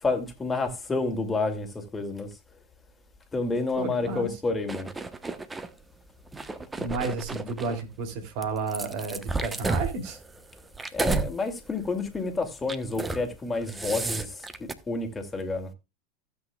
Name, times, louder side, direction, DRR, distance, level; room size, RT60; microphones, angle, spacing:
voice 1, 0.0-2.4 3.3-4.9 10.9-15.7, left 3 dB, 15° left, 2.4 m, -29 dB
voice 2, 3.8-4.3 6.8-10.2, right 4 dB, 55° right, 3.0 m, -32 dB
sound 1, 4.7-5.7 6.3-7.8 8.4-11.3 11.7-12.0 12.6-13.2 13.5-14.7, right 3 dB, 15° right, 1.1 m, -32 dB
15.5 x 8.3 x 2.4 m
hypercardioid pair, 95°, 0 cm